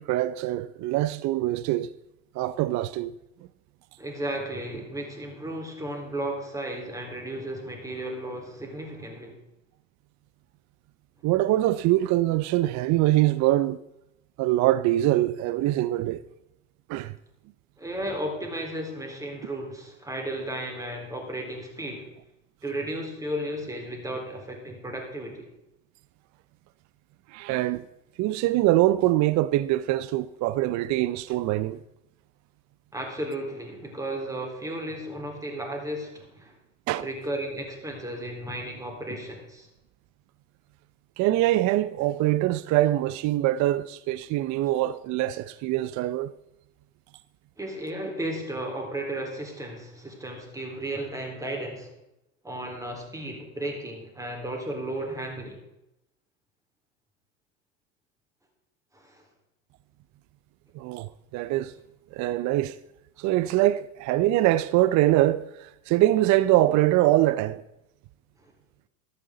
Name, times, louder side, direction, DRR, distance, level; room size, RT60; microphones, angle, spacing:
voice 1, 0.0-1.9 2.3-3.1 11.2-13.8 14.4-16.2 16.9-17.1 27.3-27.9 28.2-31.8 36.9-37.1 41.2-46.3 60.7-61.7 62.1-62.8 63.2-67.6, right 15 dB, 45° right, 0.6 m, -23 dB
voice 2, 4.0-9.4 17.8-22.1 22.6-25.5 32.9-36.5 37.0-39.7 47.6-51.9 52.4-55.6 58.9-59.2 68.4-68.5, right 1 dB, 10° right, 4.1 m, -34 dB
14.5 x 13.0 x 3.9 m
supercardioid pair, 105°, 40 cm